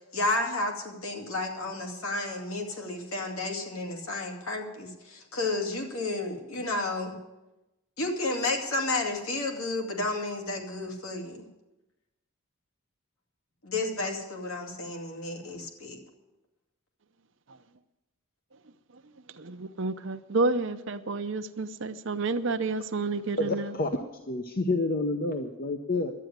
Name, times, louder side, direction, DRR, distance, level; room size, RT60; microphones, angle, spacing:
voice 1, 0.0-7.1 8.0-11.5 13.6-16.0, left 2 dB, 70° left, 2 dB, 2.4 m, -32 dB
voice 2, 19.4-23.7, right 3 dB, 55° right, 10 dB, 0.7 m, -30 dB
voice 3, 23.4-24.0 24.3-26.1, left 2 dB, 40° left, 5 dB, 0.7 m, -28 dB
12.0 x 9.2 x 9.2 m, 1.0 s
head